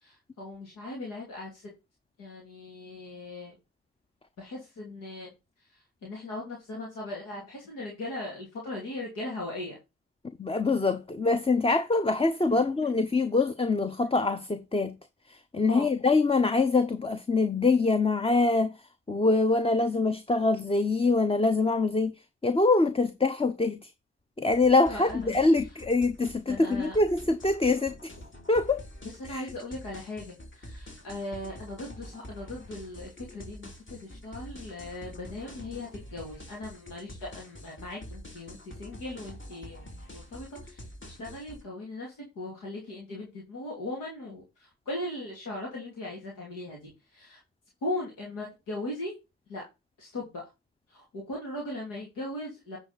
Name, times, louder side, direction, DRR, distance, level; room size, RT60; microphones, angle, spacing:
voice 1, 0.0-1.7 2.2-3.6 4.4-5.3 6.0-9.8 12.5-13.0 15.7-15.9 24.8-25.4 26.5-27.0 29.0-47.4 47.8-49.2 49.5-49.6 50.0-50.4 50.9-52.8, left 1 dB, 80° left, 2.6 m, -39 dB
voice 2, 10.4-14.9 15.3-18.7 19.1-22.1 22.4-23.9 24.4-28.1 28.5-28.8 29.3-29.4, left 3 dB, 20° left, 0.8 m, -24 dB
sound 1, 24.5-41.6, equal, 40° left, 3.0 m, -46 dB
9.9 x 4.7 x 4.1 m
hypercardioid pair, 40°, 32 cm